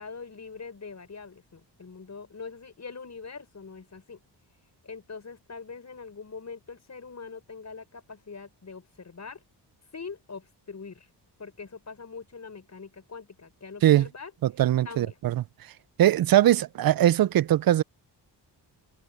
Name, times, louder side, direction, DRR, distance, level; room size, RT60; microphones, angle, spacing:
voice 1, 0.0-4.2 4.8-9.4 9.9-11.1 11.4-14.3 14.8-15.2, left 5 dB, 40° left, 5.8 m, -43 dB
voice 2, 14.6-15.4 16.0-17.8, right 12 dB, 55° right, 0.5 m, -21 dB
cardioid pair, 80°, 42 cm